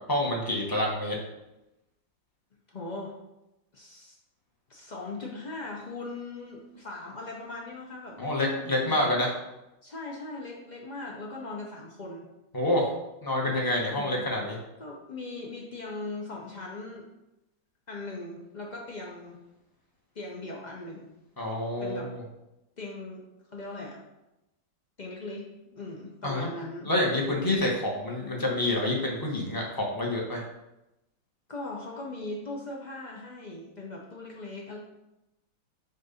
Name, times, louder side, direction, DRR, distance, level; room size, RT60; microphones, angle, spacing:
voice 1, 0.1-1.2 8.2-9.3 12.5-12.9 13.2-14.6 21.4-22.2 26.2-26.5 26.9-30.4, left 1 dB, 15° left, -2 dB, 0.7 m, -27 dB
voice 2, 2.7-3.1 3.7-4.2 4.7-9.1 9.8-12.3 13.9-14.2 14.8-17.1 17.9-19.4 20.1-21.1 21.8-22.1 22.8-23.2 23.5-24.0 25.0-26.9 31.5-34.8, left 2 dB, 75° left, -3 dB, 0.4 m, -39 dB
7.3 x 2.6 x 5.6 m, 0.93 s
omnidirectional pair, 2.1 m